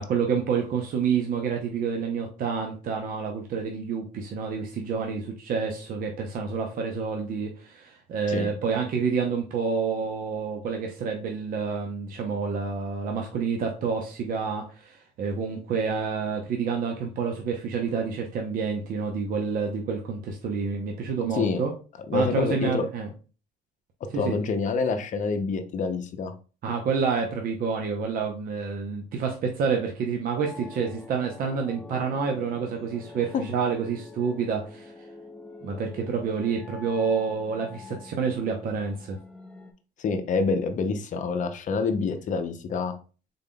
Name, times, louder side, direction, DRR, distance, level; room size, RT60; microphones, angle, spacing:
voice 1, 0.1-21.7 22.1-23.1 24.1-24.4 26.6-34.9 35.6-39.2, right 5 dB, 55° right, 2 dB, 0.7 m, -28 dB
voice 2, 22.1-22.9 24.1-26.3 33.3-33.4 40.0-42.9, left 4 dB, 50° left, 8 dB, 0.6 m, -27 dB
sound 1, 30.4-39.7, left 3 dB, 5° left, 0.5 m, -45 dB
3.8 x 3.6 x 2.2 m, 0.35 s
cardioid pair, 110°, 17 cm